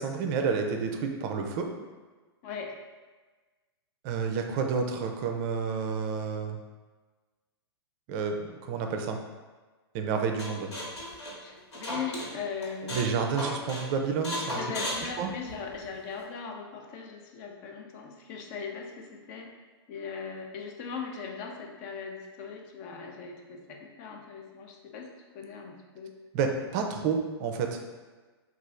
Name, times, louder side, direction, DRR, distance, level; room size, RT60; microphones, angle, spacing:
voice 1, 0.0-1.7 4.0-6.6 8.1-8.3 8.6-9.2 9.9-10.7 12.9-14.6 15.2-15.3 26.3-27.8, right 5 dB, 40° right, 4 dB, 0.4 m, -30 dB
voice 2, 2.4-2.8 11.4-13.0 14.5-19.5 19.9-26.1, left 5 dB, 40° left, 2 dB, 0.5 m, -39 dB
sound 1, 10.4-12.3 12.6-13.1 13.4-13.8 14.2-15.8, left 1 dB, 90° left, 1.4 m, -34 dB
3.1 x 2.4 x 3.6 m, 1.3 s
hypercardioid pair, 135°, 14 cm